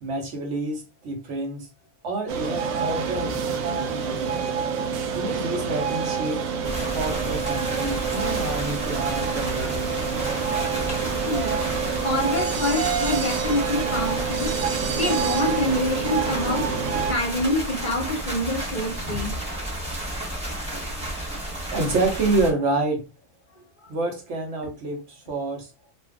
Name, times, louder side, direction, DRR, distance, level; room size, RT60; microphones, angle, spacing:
voice 1, 0.0-1.7 2.0-4.6 5.1-6.4 6.9-9.8 10.9-11.1 20.7-20.9 21.2-21.4 21.7-23.1 23.9-25.7, right 2 dB, 65° right, 1.1 m, -28 dB
sound 1, 2.3-17.1, right 6 dB, 85° right, 1.0 m, -27 dB
sound 2, 6.6-22.5, right 1 dB, 5° right, 1.1 m, -32 dB
voice 2, 11.2-11.6 12.0-14.6 15.0-19.4 23.5-23.9, left 1 dB, 45° left, 0.7 m, -26 dB
2.5 x 2.4 x 3.5 m
omnidirectional pair, 1.4 m